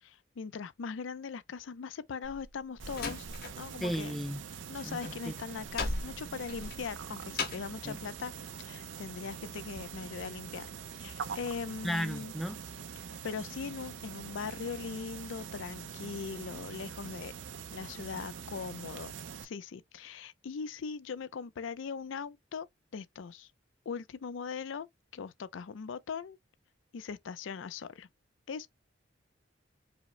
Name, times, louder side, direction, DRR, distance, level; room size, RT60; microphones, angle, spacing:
voice 1, 0.0-3.3 3.6-4.2 4.7-8.3 8.6-10.7 11.0-12.3 13.2-17.3 17.7-19.2 19.4-22.7 22.9-23.5 23.9-24.9 25.1-26.4 26.9-28.1 28.5-28.7, left 6 dB, 85° left, 0.4 m, -40 dB
Slam, 2.2-4.0 4.3-7.8, left 3 dB, 50° left, 1.0 m, -38 dB
sound 1, 2.8-19.4, right 6 dB, 80° right, 0.5 m, -44 dB
voice 2, 3.8-4.4 4.8-5.0 5.3-5.4 7.9-8.0 11.8-12.6, equal, ahead, 0.4 m, -34 dB
4.9 x 2.0 x 3.1 m
head